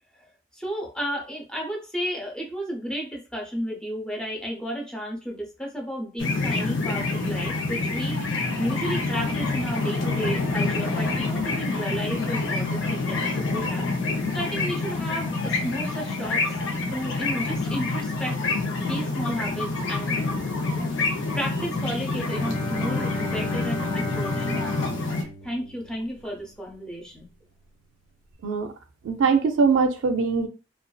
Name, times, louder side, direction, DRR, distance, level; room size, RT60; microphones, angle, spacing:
voice 1, 0.5-16.6 16.9-18.4 18.8-20.4 21.3-24.9 25.4-27.3, equal, 5° left, -1 dB, 0.5 m, -33 dB
sound 1, 6.2-25.2, left 3 dB, 80° left, 0.6 m, -27 dB
Bowed string instrument, 22.2-26.7, left 1 dB, 50° left, 1.1 m, -35 dB
voice 2, 29.0-30.5, right 5 dB, 80° right, 7 dB, 0.4 m, -22 dB
2.5 x 2.3 x 2.2 m, 0.32 s
head